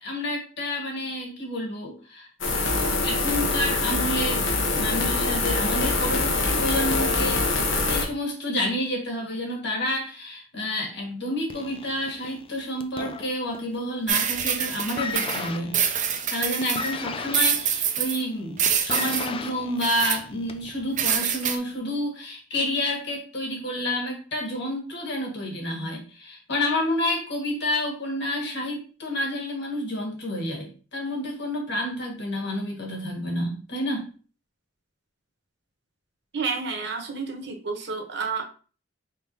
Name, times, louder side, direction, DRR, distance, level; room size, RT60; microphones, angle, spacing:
voice 1, 0.0-2.3 3.0-4.4 4.7-7.4 7.9-15.8 16.1-34.1, left 1 dB, 65° left, 0 dB, 1.6 m, -29 dB
sound 1, 2.4-8.0, left 3 dB, 85° left, 1.1 m, -24 dB
sound 2, 11.5-13.8 14.1-14.5 14.8-20.7 21.6-21.7, left 4 dB, 30° left, 0.4 m, -36 dB
sound 3, 14.1-16.9 17.3-18.2 18.6-19.3 19.8-20.2 21.0-21.6, right 8 dB, 40° right, 0.5 m, -25 dB
voice 2, 36.3-38.4, right 5 dB, 65° right, 3 dB, 0.9 m, -30 dB
4.3 x 3.6 x 2.7 m, 0.38 s
head